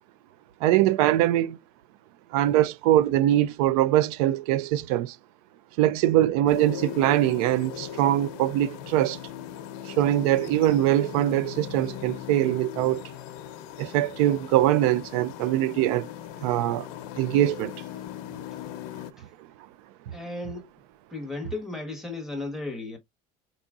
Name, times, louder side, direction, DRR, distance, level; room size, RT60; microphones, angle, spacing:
voice 1, 0.6-1.6 2.3-5.2 5.8-9.2 9.9-13.0 13.8-16.1 16.4-16.9 17.2-17.8, right 13 dB, 85° right, 0.6 m, -22 dB
sound 1, 6.5-19.1, left 11 dB, 75° left, 0.8 m, -39 dB
voice 2, 20.1-20.7 21.1-23.0, left 2 dB, ahead, 1.2 m, -35 dB
4.9 x 4.0 x 2.4 m
cardioid pair, 170°, 18 cm